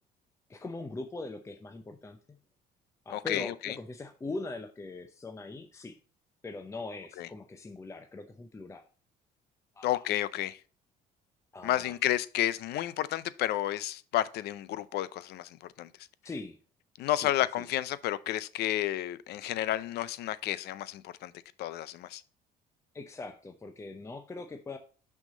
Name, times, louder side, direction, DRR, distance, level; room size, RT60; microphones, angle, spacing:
voice 1, 0.5-2.4 3.1-6.0 6.4-8.8 9.8-10.1 11.5-12.0 16.2-16.6 17.2-17.3 17.6-17.7 22.9-24.8, left 2 dB, 15° left, 0.6 m, -41 dB
voice 2, 3.1-3.8 7.2-7.3 9.8-10.6 11.6-15.9 17.0-21.3 21.6-22.2, left 13 dB, 75° left, 0.5 m, -31 dB
6.0 x 5.7 x 3.8 m
cardioid pair, 110°, 17 cm